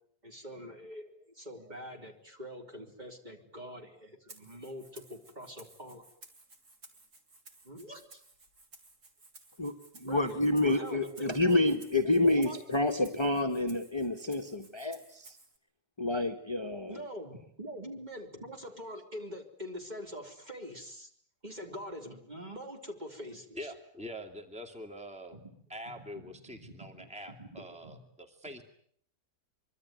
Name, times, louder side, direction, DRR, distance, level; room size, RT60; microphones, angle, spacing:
voice 1, 0.2-6.0 7.6-8.2 10.0-11.7 12.2-12.6 16.9-21.1 21.4-23.7 25.3-25.6 25.8-28.0, equal, 25° right, 2 dB, 4.2 m, -44 dB
Rattle (instrument), 4.3-15.6, right 3 dB, 70° right, 3.6 m, -57 dB
voice 2, 9.6-15.4 16.0-17.0, left 2 dB, 15° left, 2 dB, 1.6 m, -29 dB
voice 3, 23.5-25.4 25.7-28.6, equal, 5° right, 5 dB, 2.6 m, -44 dB
25.0 x 24.5 x 9.6 m, 0.64 s
omnidirectional pair, 1.7 m